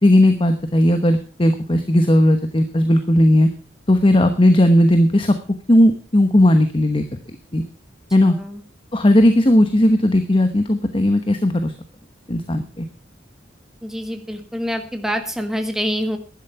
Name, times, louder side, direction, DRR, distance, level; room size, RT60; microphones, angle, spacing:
voice 1, 0.0-3.5 3.9-5.3 5.7-7.2 7.5-7.6 8.1-8.4 8.9-11.7 12.3-12.9, left 1 dB, 30° left, 8 dB, 1.0 m, -16 dB
voice 2, 13.8-16.2, equal, ahead, 6 dB, 1.7 m, -26 dB
11.5 x 11.0 x 5.7 m, 0.37 s
head